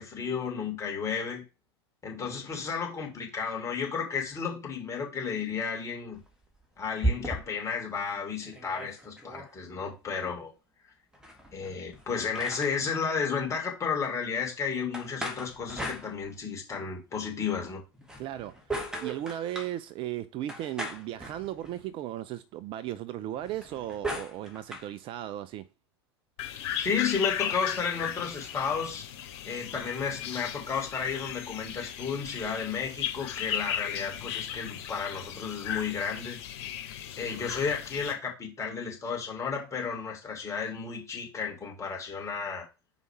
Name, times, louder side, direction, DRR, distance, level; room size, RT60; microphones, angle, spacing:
voice 1, 0.0-1.4 2.0-6.2 6.8-10.5 11.5-17.8 26.8-29.0 29.4-36.4 37.2-42.7, left 6 dB, 20° left, 3.1 m, -33 dB
sound 1, 6.1-7.7 8.1-8.2 8.4-9.5 11.1-13.0 14.9-16.6 17.9-19.8 20.5-21.9 23.4-24.9, right 1 dB, 5° right, 2.0 m, -37 dB
voice 2, 18.2-18.6 19.0-25.7, right 12 dB, 40° right, 0.5 m, -36 dB
sound 2, 26.4-38.1, left 10 dB, 50° left, 2.5 m, -36 dB
5.3 x 4.8 x 4.6 m
figure-of-eight pair, 85°, 14 cm